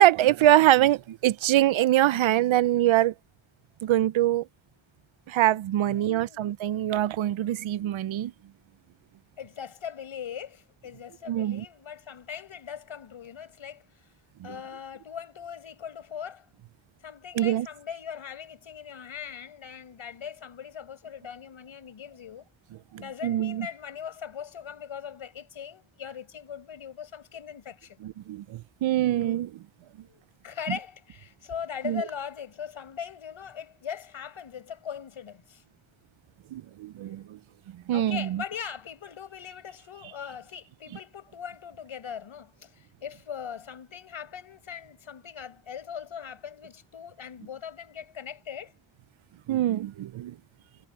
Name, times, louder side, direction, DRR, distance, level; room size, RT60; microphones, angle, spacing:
voice 1, 0.0-3.1 3.8-4.5 5.3-8.3 11.3-11.6 14.4-14.5 17.3-17.7 22.9-23.7 28.0-29.5 31.8-32.0 36.5-37.4 37.9-38.4 49.5-50.4, right 13 dB, 70° right, 0.6 m, -24 dB
voice 2, 5.9-6.4 9.4-13.9 14.4-16.5 17.0-22.5 23.0-28.0 30.0-35.6 37.9-48.7, left 8 dB, 75° left, 5.8 m, -40 dB
wide cardioid pair, 100°, 49 cm